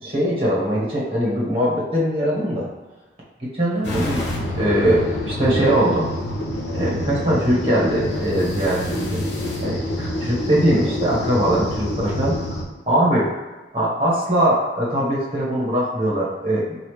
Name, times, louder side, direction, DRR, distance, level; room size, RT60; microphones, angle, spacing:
voice 1, 0.0-2.7 3.4-4.2 4.6-6.1 6.7-9.2 9.6-12.6 12.9-13.3 13.7-16.8, right 1 dB, 30° right, -6 dB, 1.2 m, -21 dB
sound 1, 3.8-12.6, left 1 dB, 75° left, 1.0 m, -27 dB
5.4 x 2.5 x 3.2 m, 1.2 s
head